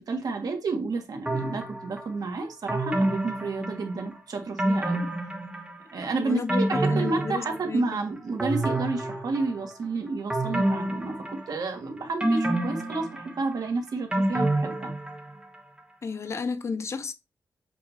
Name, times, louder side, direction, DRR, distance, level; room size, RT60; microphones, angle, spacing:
voice 1, 0.0-5.1 5.9-14.9, right 3 dB, 65° right, 1.5 m, -31 dB
sound 1, 1.3-2.1 2.7-4.1 4.6-5.9 6.3-7.9 8.4-9.7 10.3-11.7 12.2-15.5 15.8-15.9, right 1 dB, 15° right, 1.2 m, -28 dB
voice 2, 6.2-7.8 16.0-17.1, left 5 dB, 40° left, 0.7 m, -32 dB
7.7 x 2.8 x 4.4 m
wide cardioid pair, 125°, 7 cm